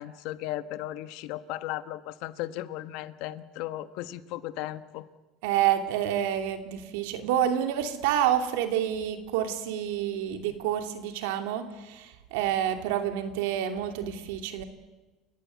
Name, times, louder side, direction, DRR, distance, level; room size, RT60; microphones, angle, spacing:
voice 1, 0.0-5.1, left 14 dB, 70° left, 13 dB, 1.2 m, -36 dB
voice 2, 5.4-14.6, right 10 dB, 85° right, 7 dB, 2.8 m, -28 dB
29.5 x 15.5 x 9.5 m, 1.2 s
cardioid pair, 135°, 0 cm